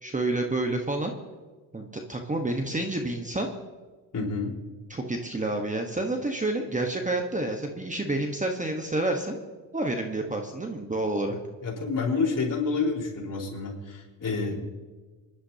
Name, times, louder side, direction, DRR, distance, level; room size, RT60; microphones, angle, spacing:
voice 1, 0.0-1.1 1.7-3.5 4.9-9.3 9.7-11.4, right 2 dB, 15° right, 3 dB, 1.3 m, -29 dB
voice 2, 4.1-4.5 11.3-11.4 11.6-14.7, left 4 dB, 45° left, -3 dB, 4.5 m, -29 dB
26.5 x 11.5 x 2.9 m, 1.4 s
cardioid pair, 95°, 45 cm